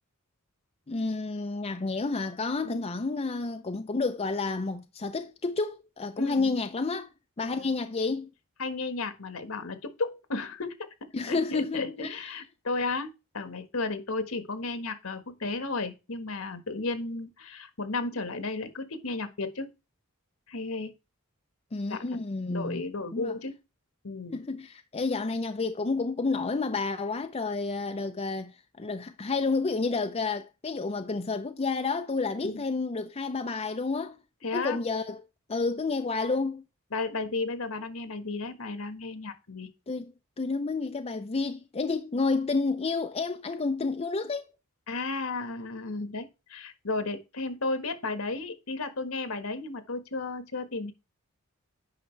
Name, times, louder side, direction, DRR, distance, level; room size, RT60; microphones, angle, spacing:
voice 1, 0.9-7.1 7.4-8.3 11.1-12.3 21.7-22.8 23.1-23.3 24.3-34.2 34.5-35.2 35.5-36.6 39.9-44.5, left 3 dB, 30° left, 0.5 m, -30 dB
voice 2, 6.2-6.5 7.6-7.7 8.6-10.7 11.3-13.1 13.3-19.7 20.5-20.9 21.9-22.0 22.5-23.5 24.0-24.4 32.4-32.5 34.4-34.8 36.9-39.7 44.9-50.9, left 3 dB, 70° left, 1.4 m, -33 dB
9.3 x 5.4 x 3.2 m
head